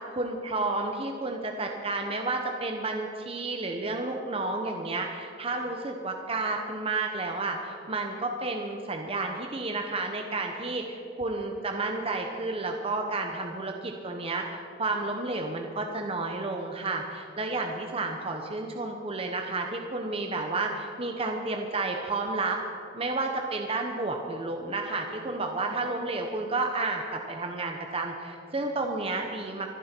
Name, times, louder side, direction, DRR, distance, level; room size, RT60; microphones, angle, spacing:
voice 1, 0.1-22.6 22.9-29.7, right 3 dB, 30° right, 2 dB, 1.0 m, -31 dB
25.0 x 10.5 x 4.5 m, 2.5 s
head